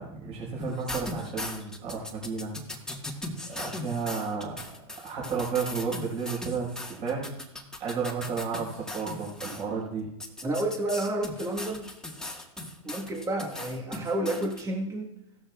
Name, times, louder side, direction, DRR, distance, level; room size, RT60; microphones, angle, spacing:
voice 1, 0.0-2.5 3.5-4.8 5.0-7.3 7.8-10.1, right 5 dB, 35° right, -4 dB, 5.3 m, -32 dB
sound 1, 0.6-9.6 10.2-14.6, left 1 dB, 5° left, 1.7 m, -38 dB
voice 2, 10.4-11.9 12.8-15.1, right 1 dB, 20° right, 1 dB, 1.6 m, -30 dB
16.5 x 13.0 x 2.5 m, 0.87 s
hypercardioid pair, 110°, 17 cm